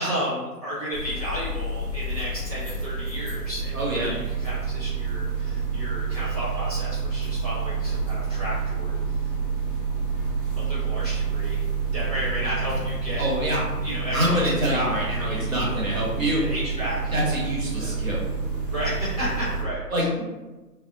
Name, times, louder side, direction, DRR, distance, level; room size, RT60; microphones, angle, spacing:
voice 1, 0.0-8.9 10.6-11.6 11.9-13.2 13.8-17.4 17.8-17.9 18.7-19.8, equal, 25° left, -12 dB, 0.7 m, -33 dB
sound 1, 0.9-19.6, right 4 dB, 35° right, 0.5 m, -28 dB
voice 2, 3.7-4.1 13.2-13.7 14.1-16.4 17.1-18.2 19.9-20.2, equal, 55° right, -5 dB, 1.0 m, -25 dB
2.7 x 2.0 x 2.6 m, 1.1 s
figure-of-eight pair, 160°, 49 cm